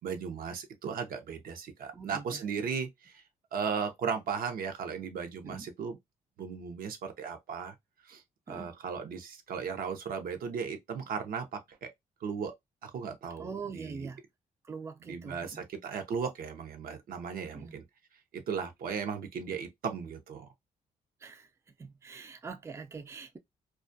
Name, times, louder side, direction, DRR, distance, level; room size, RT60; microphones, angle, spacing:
voice 1, 0.0-3.2 3.5-6.0 6.4-7.7 8.1-8.2 8.5-11.9 12.2-12.5 12.8-14.1 15.0-17.8 18.3-20.5, right 6 dB, 70° right, 0.6 m, -36 dB
voice 2, 1.9-2.4 5.4-5.7 8.5-8.7 13.4-14.2 14.6-15.7 17.5-17.8 21.2-21.5 21.8-23.4, right 5 dB, 20° right, 0.4 m, -43 dB
2.3 x 2.2 x 2.5 m
cardioid pair, 75°, 15 cm